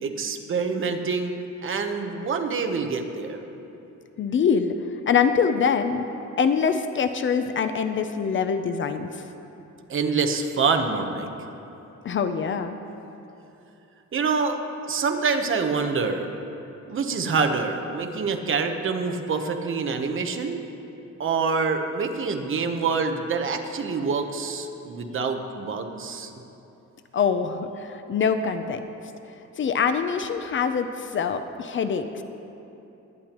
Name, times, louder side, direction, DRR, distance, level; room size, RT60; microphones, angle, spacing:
voice 1, 0.0-3.4 9.9-11.3 14.1-14.6 14.8-16.3 16.9-20.6 21.2-26.3, right 4 dB, 45° right, 5 dB, 0.9 m, -26 dB
voice 2, 4.2-4.7 5.1-6.1 6.4-9.2 12.0-12.8 27.1-28.8 29.6-32.2, left 6 dB, 40° left, 9 dB, 0.5 m, -24 dB
21.5 x 10.0 x 3.0 m, 3.0 s
cardioid pair, 140°, 30 cm